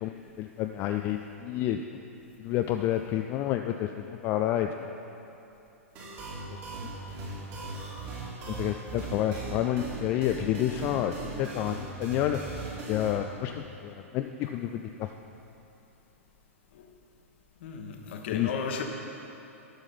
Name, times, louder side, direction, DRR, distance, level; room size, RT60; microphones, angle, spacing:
voice 1, 0.0-1.8 2.4-4.9 8.5-12.5 12.9-15.1 18.3-18.5, left 12 dB, 30° left, 5 dB, 0.3 m, -29 dB
sound 1, 6.0-13.1, right 3 dB, 35° right, 2.4 m, -39 dB
voice 2, 17.6-18.8, left 6 dB, 50° left, 3 dB, 1.1 m, -34 dB
11.5 x 6.3 x 5.3 m, 2.9 s
figure-of-eight pair, 100°, 8 cm